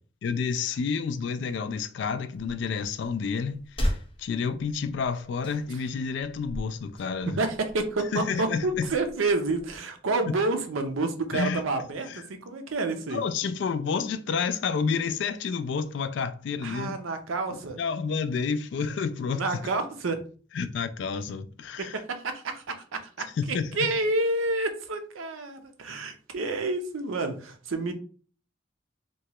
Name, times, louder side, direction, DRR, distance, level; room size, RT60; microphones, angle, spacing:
voice 1, 0.2-7.3 8.1-8.9 10.3-10.4 11.3-11.6 12.1-12.2 13.1-17.0 17.8-19.4 20.5-22.0 23.4-23.9, left 5 dB, 60° left, 0.3 m, -30 dB
sound 1, 2.3-9.8, equal, 25° left, 0.6 m, -38 dB
voice 2, 7.3-13.2 16.6-17.8 19.3-20.2 21.8-23.3 23.8-27.9, right 2 dB, 85° right, 0.6 m, -29 dB
3.0 x 2.3 x 2.9 m
head